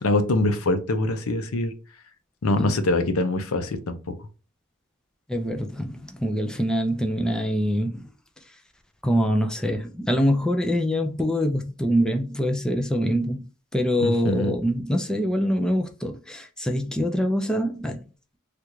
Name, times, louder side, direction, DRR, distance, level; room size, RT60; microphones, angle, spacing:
voice 1, 0.0-1.7 2.4-4.1 14.0-14.5, left 2 dB, 75° left, 0.6 m, -24 dB
voice 2, 5.3-8.0 9.0-13.4 13.7-18.0, equal, 5° left, 0.4 m, -24 dB
3.3 x 2.4 x 3.0 m
head